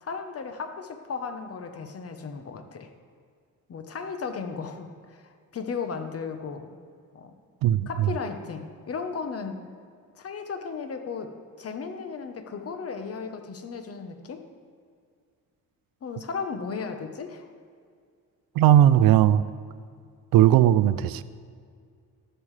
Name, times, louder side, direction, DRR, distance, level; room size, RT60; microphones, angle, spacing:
voice 1, 0.0-2.9 3.7-6.7 7.1-7.3 7.9-9.6 10.1-11.3 11.6-14.4 16.0-17.5, left 5 dB, 45° left, 7 dB, 1.0 m, -35 dB
voice 2, 7.6-8.1 18.6-19.4 20.3-21.2, right 12 dB, 90° right, 16 dB, 0.5 m, -18 dB
13.0 x 11.0 x 3.3 m, 2.1 s
cardioid pair, 115°, 34 cm